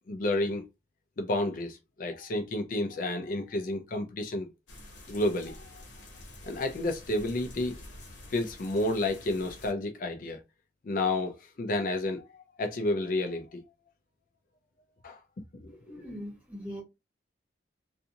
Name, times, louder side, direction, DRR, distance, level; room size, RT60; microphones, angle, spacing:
voice 1, 0.1-0.6 1.2-4.5 5.1-5.7 6.4-7.7 8.3-10.4 10.8-12.2 12.6-13.6 15.0-15.2 15.6-16.1, left 2 dB, 50° left, 0.4 m, -30 dB
sound 1, 4.7-9.7, left 1 dB, 85° left, 1.0 m, -48 dB
voice 2, 15.8-16.8, equal, 10° right, 1.2 m, -41 dB
2.5 x 2.4 x 2.7 m
head